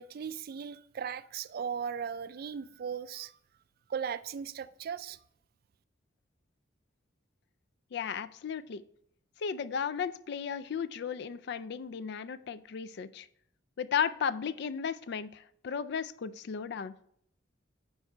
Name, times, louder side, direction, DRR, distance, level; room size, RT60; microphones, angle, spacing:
voice 1, 0.0-3.3 3.9-5.2, right 7 dB, 50° right, 0.3 m, -37 dB
voice 2, 7.9-8.8 9.4-13.3 13.8-15.3 15.6-16.9, left 7 dB, 60° left, 0.4 m, -34 dB
8.0 x 4.9 x 4.4 m
head